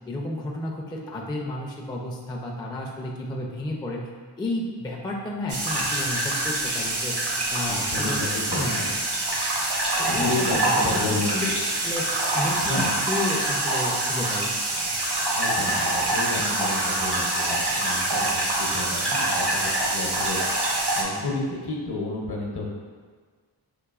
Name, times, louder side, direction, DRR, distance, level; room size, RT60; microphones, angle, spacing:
voice 1, 0.1-4.1 4.4-7.2 7.5-8.2 8.5-8.9 10.0-11.5 11.8-12.0 12.3-14.5, left 1 dB, 10° left, -2 dB, 0.3 m, -31 dB
sound 1, 5.5-21.0, right 2 dB, 60° right, 0.7 m, -25 dB
voice 2, 7.7-8.9 10.1-11.5 12.6-12.9 15.3-20.4 20.7-22.7, left 2 dB, 55° left, -1 dB, 0.7 m, -31 dB
4.8 x 2.6 x 2.3 m, 1.5 s
wide cardioid pair, 60°, 47 cm